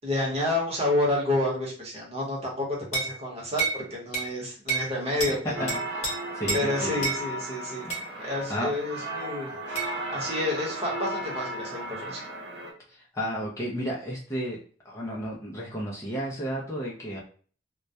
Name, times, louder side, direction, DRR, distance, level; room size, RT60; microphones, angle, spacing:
voice 1, 0.0-2.7 2.9-5.7 6.5-9.6 10.1-12.2, left 1 dB, 35° right, -4 dB, 0.9 m, -29 dB
sound 1, 2.9-3.1 3.6-3.8 4.1-4.3 4.7-4.9 5.2-5.4 5.7-6.1 6.5-6.6 7.0-7.2 7.9-8.1 9.8-9.9, right 3 dB, 40° left, 0.9 m, -28 dB
voice 2, 5.3-7.0 8.1-8.8 12.9-17.2, equal, 15° left, -4 dB, 0.5 m, -33 dB
sound 2, 5.5-12.7, right 1 dB, 60° right, 0.8 m, -35 dB
2.2 x 2.1 x 2.6 m, 0.43 s
head